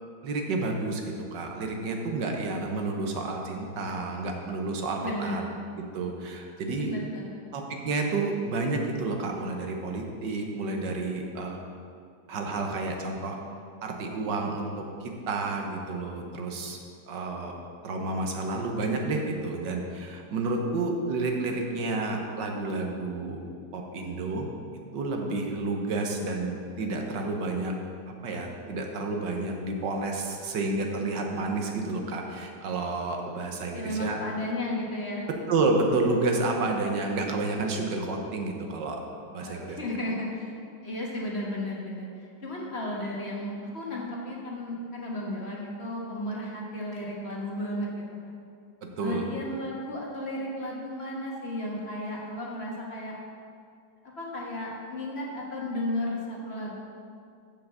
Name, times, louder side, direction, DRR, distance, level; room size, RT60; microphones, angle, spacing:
voice 1, 0.2-1.0 1.3-5.4 5.9-6.9 7.5-11.6 12.3-13.4 13.8-16.8 17.1-17.5 17.8-23.4 23.7-24.5 24.9-27.7 28.2-34.2 35.5-39.0 39.3-39.8 49.0-49.3, right 3 dB, 85° right, 2 dB, 1.7 m, -30 dB
voice 2, 5.0-5.4 6.8-7.4 33.7-35.3 39.4-40.5 40.8-48.3 49.0-53.1 54.0-56.8, left 1 dB, 40° left, -3 dB, 1.5 m, -34 dB
7.2 x 7.1 x 6.6 m, 2.4 s
omnidirectional pair, 1.9 m